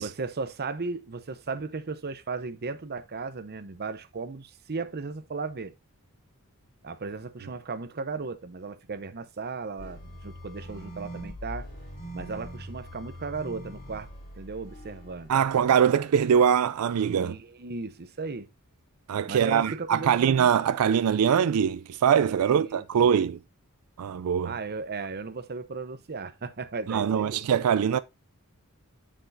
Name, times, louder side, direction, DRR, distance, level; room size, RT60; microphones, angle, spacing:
voice 1, 0.0-5.7 6.8-11.7 12.1-14.1 14.4-15.3 17.1-18.5 19.3-20.5 22.4-23.3 24.4-27.5, right 4 dB, 45° right, 0.8 m, -36 dB
sound 1, 9.8-16.0, equal, 45° left, 4.0 m, -42 dB
voice 2, 15.3-17.3 19.1-23.4 24.0-24.5 26.9-28.0, right 8 dB, 75° right, 0.4 m, -23 dB
7.3 x 7.0 x 2.6 m
head